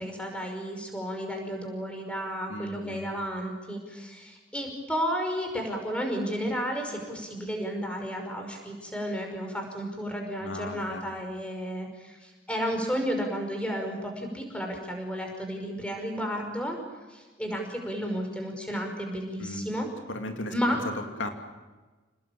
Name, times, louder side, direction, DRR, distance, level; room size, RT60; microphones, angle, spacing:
voice 1, 0.0-16.8 17.1-19.9 20.5-20.8, equal, 5° left, 3 dB, 5.4 m, -32 dB
voice 2, 2.5-3.1 10.4-11.0 19.4-19.7 20.1-20.8 21.2-21.3, left 1 dB, 75° left, 5 dB, 2.8 m, -36 dB
28.5 x 20.0 x 8.7 m, 1.3 s
head